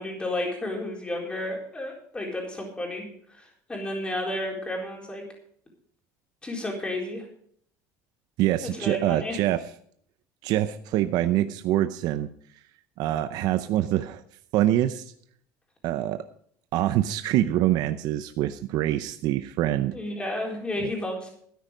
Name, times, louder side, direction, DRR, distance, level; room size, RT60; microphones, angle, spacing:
voice 1, 0.0-3.1 3.7-5.2 6.4-7.3 8.6-9.4 19.9-21.3, left 1 dB, 15° left, 0 dB, 4.1 m, -32 dB
voice 2, 8.4-9.7 10.4-12.3 13.0-14.2 14.5-15.1 15.8-16.2 16.7-20.0 20.8-20.9, right 13 dB, 60° right, 10 dB, 0.7 m, -25 dB
13.0 x 9.8 x 5.2 m, 0.62 s
cardioid pair, 140°, 8 cm